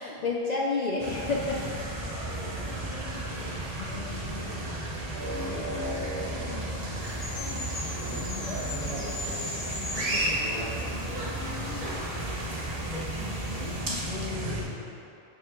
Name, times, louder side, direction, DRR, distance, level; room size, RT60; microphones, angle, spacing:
voice 1, 0.0-1.6 2.9-3.0 3.8-4.5 8.2-8.4 10.0-10.4 14.1-14.8, left 3 dB, 55° left, -2 dB, 0.5 m, -32 dB
sound 1, 1.0-14.6, right 1 dB, 35° right, 0.9 m, -33 dB
voice 2, 3.3-3.7 4.4-4.8 5.2-5.7 6.9-7.4 7.9-8.7 9.1-9.4 10.4-11.8 12.7-13.0 14.2-14.4, right 1 dB, 55° right, -4 dB, 1.2 m, -43 dB
sound 2, 7.0-13.8, left 1 dB, 25° left, 0.9 m, -40 dB
5.6 x 5.6 x 3.7 m, 2.7 s
omnidirectional pair, 1.1 m